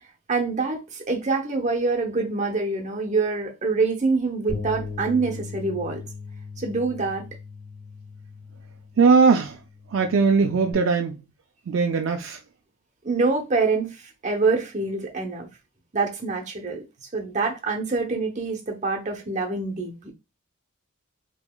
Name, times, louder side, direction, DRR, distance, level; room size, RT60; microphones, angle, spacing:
voice 1, 0.3-6.0 6.6-7.3 13.0-15.5 15.9-16.8 17.1-20.1, right 3 dB, 35° right, 0.7 m, -25 dB
Bass guitar, 4.5-10.7, left 4 dB, 25° left, 1.6 m, -38 dB
voice 2, 9.0-9.6 9.9-11.2 11.7-12.4, right 5 dB, 65° right, 0.4 m, -19 dB
3.7 x 2.9 x 2.2 m
head